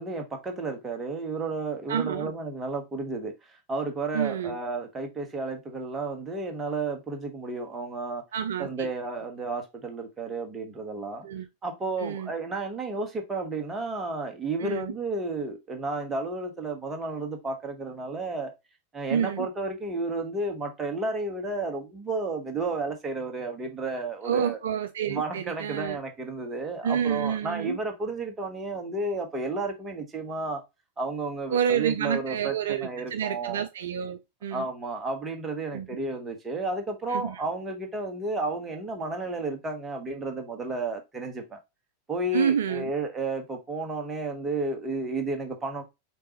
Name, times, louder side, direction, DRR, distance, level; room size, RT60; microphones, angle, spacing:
voice 1, 0.0-8.2 8.6-11.3 11.6-18.5 18.9-24.6 25.1-30.6 31.0-33.7 34.5-41.6 42.1-45.8, right 3 dB, 20° right, 1.2 m, -32 dB
voice 2, 1.9-2.3 4.1-4.6 8.3-8.9 11.2-11.4 12.0-12.3 14.6-14.9 19.1-19.5 24.2-26.0 26.8-27.8 31.5-34.7 35.7-35.9 37.1-37.4 42.3-42.9, right 8 dB, 60° right, 0.4 m, -28 dB
4.5 x 3.5 x 3.0 m
figure-of-eight pair, 90°, 0 cm